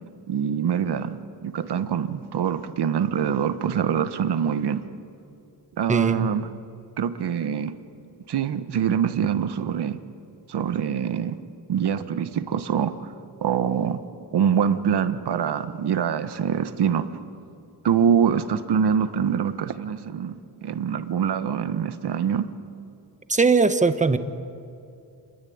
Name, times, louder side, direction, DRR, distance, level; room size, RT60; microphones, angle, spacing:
voice 1, 0.3-4.8 5.8-6.5 7.0-7.7 8.3-10.0 10.5-11.4 11.7-13.1 13.4-14.0 14.3-17.1 17.8-20.3 20.6-22.5, right 8 dB, 70° right, 10 dB, 1.4 m, -24 dB
voice 2, 5.9-6.3 23.3-24.2, right 4 dB, 15° right, 9 dB, 1.1 m, -20 dB
28.5 x 21.5 x 8.8 m, 2.6 s
wide cardioid pair, 155°, 42 cm